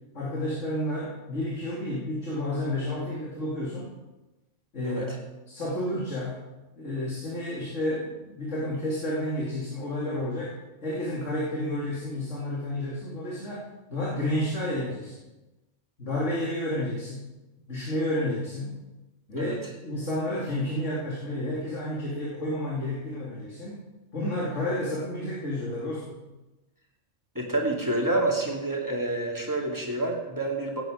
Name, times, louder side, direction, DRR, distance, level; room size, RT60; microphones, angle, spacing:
voice 1, 0.1-3.9 4.7-6.4 6.8-10.5 10.8-13.6 13.9-15.2 16.0-17.3 17.7-18.8 19.3-23.8 24.1-26.2, left 1 dB, 75° left, -6 dB, 3.0 m, -31 dB
voice 2, 4.8-5.2 19.4-19.6 27.3-30.8, right 2 dB, 15° right, -1 dB, 2.4 m, -28 dB
16.5 x 9.5 x 5.0 m, 1.1 s
omnidirectional pair, 1.3 m